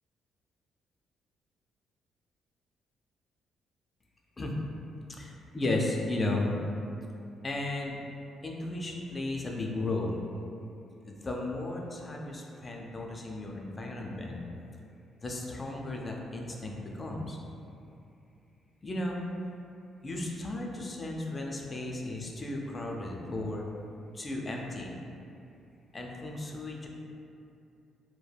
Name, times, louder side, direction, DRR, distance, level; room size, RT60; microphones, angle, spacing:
voice 1, 5.1-6.5 7.4-8.0 8.4-10.2 11.0-14.4 15.2-17.4 18.8-19.2 20.0-23.6 24.1-25.0 25.9-26.9, left 2 dB, 30° left, 0 dB, 0.4 m, -34 dB
3.2 x 2.1 x 2.2 m, 2.6 s
cardioid pair, 90°, 0 cm